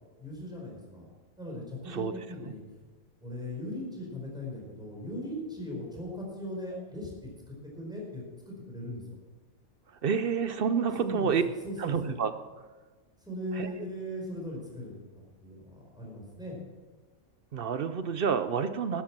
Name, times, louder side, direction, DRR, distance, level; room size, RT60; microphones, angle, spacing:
voice 1, 0.2-1.1 1.4-2.8 3.2-9.2 11.0-11.3 11.6-12.2 13.2-14.9 15.4-16.6, left 1 dB, 5° right, -3 dB, 4.7 m, -39 dB
voice 2, 10.0-11.4 11.8-12.3 13.6-13.7 17.5-19.0, right 6 dB, 55° right, 11 dB, 0.7 m, -28 dB
12.0 x 10.5 x 6.0 m, 1.3 s
omnidirectional pair, 1.4 m